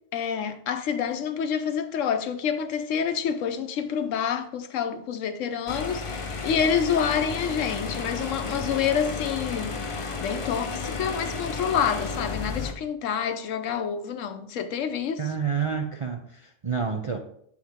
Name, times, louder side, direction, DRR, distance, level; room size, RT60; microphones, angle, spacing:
voice 1, 0.1-15.2, left 7 dB, 80° left, 1.0 m, -28 dB
sound 1, 5.7-12.7, left 4 dB, 45° left, 0.4 m, -32 dB
voice 2, 15.2-17.2, right 6 dB, 50° right, 0.4 m, -29 dB
7.8 x 4.6 x 3.5 m
omnidirectional pair, 1.3 m